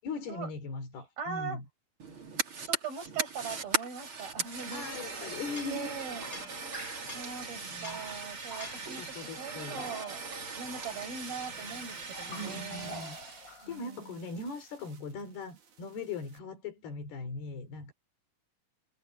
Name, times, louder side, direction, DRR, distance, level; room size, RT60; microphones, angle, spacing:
voice 1, 0.0-1.6 4.7-5.9 6.2-7.0 7.5-8.0 8.8-9.9 12.3-17.9, left 4 dB, 90° left, 5.8 m, -40 dB
voice 2, 1.2-1.6 2.6-5.4 5.7-6.3 7.1-9.0 9.4-10.2 10.6-13.0 13.6-14.2, right 6 dB, 70° right, 8.0 m, -41 dB
Fire, 2.0-13.6, right 4 dB, 35° right, 3.5 m, -39 dB
sound 1, 5.1-7.5 7.8-9.3 9.7-10.4 10.7-11.2 11.8-13.8, left 1 dB, 20° left, 6.5 m, -47 dB
sound 2, 11.5-16.4, right 6 dB, 55° right, 4.1 m, -58 dB
omnidirectional pair, 4.4 m